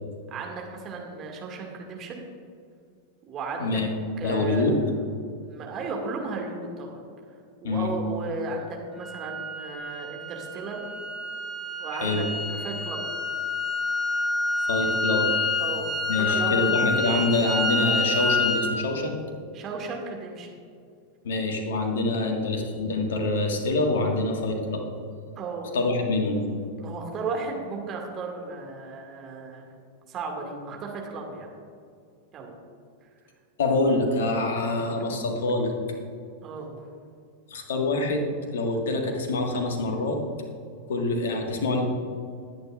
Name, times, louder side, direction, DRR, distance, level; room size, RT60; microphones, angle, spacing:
voice 1, 0.3-2.3 3.3-3.8 4.2-4.8 5.4-7.0 7.6-10.9 11.8-13.0 15.6-16.7 19.5-20.6 25.4-25.7 26.8-29.7 30.1-31.5 32.3-32.5 36.4-36.8, right 3 dB, 30° right, 1 dB, 2.1 m, -35 dB
voice 2, 4.2-4.8 7.6-7.9 12.0-12.3 14.7-15.3 16.1-19.2 21.2-24.8 25.7-26.5 33.6-35.7 37.5-38.3 38.5-40.2 40.9-41.9, left 2 dB, 60° left, 3 dB, 1.7 m, -25 dB
sound 1, 9.0-18.7, left 3 dB, ahead, 1.3 m, -28 dB
20.0 x 9.4 x 2.5 m, 2.3 s
figure-of-eight pair, 90°, 0 cm